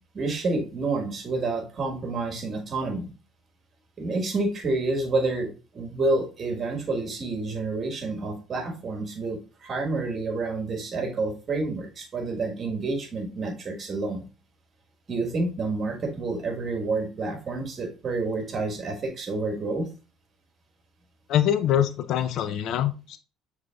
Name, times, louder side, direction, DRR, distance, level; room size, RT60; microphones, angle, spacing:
voice 1, 0.1-3.1 4.0-14.2 15.1-19.9, right 3 dB, 45° right, 4 dB, 1.4 m, -29 dB
voice 2, 21.3-23.2, left 10 dB, 65° left, 11 dB, 0.4 m, -24 dB
6.1 x 3.3 x 2.2 m, 0.32 s
hypercardioid pair, 65°, 0 cm